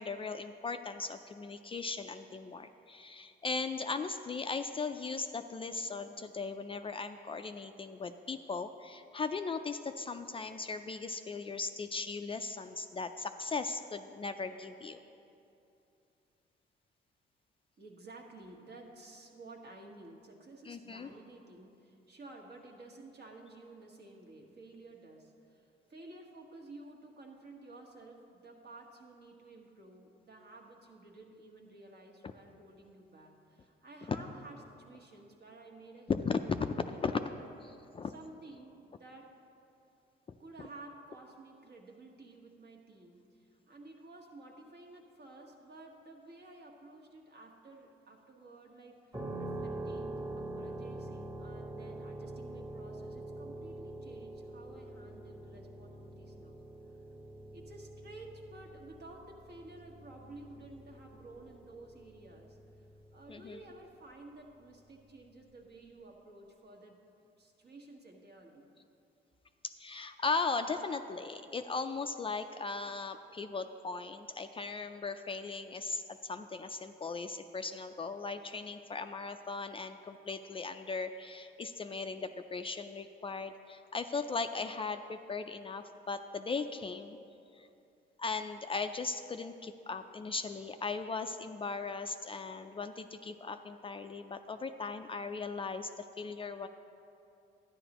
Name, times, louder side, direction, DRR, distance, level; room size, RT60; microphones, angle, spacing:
voice 1, 0.0-15.0 20.6-21.1 34.1-34.2 36.1-37.1 37.9-38.1 63.3-63.6 69.6-87.2 87.5-87.7 88.2-96.7, left 4 dB, 25° left, 8 dB, 0.3 m, -38 dB
voice 2, 17.8-36.5 37.2-37.4 38.1-39.4 40.4-56.6 57.5-62.6 63.1-68.7, right 2 dB, 55° right, 1 dB, 1.3 m, -53 dB
sound 1, 49.1-63.8, right 2 dB, 15° right, 1.2 m, -45 dB
11.5 x 10.0 x 3.0 m, 2.7 s
cardioid pair, 90°, 20 cm